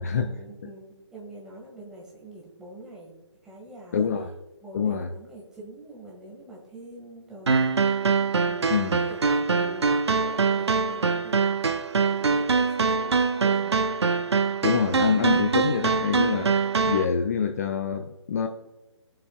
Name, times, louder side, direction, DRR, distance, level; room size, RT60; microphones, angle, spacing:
voice 1, 0.0-3.1 3.4-4.1 4.6-8.0 8.5-11.7 12.0-13.8, right 1 dB, 5° right, -3 dB, 1.7 m, -45 dB
voice 2, 3.9-4.3 4.7-5.1 8.7-9.0 14.6-16.5 16.9-18.5, left 6 dB, 35° left, 5 dB, 0.6 m, -25 dB
sound 1, 7.5-17.1, right 5 dB, 60° right, 0.6 m, -23 dB
19.5 x 7.5 x 2.3 m, 1.1 s
figure-of-eight pair, 140°, 15 cm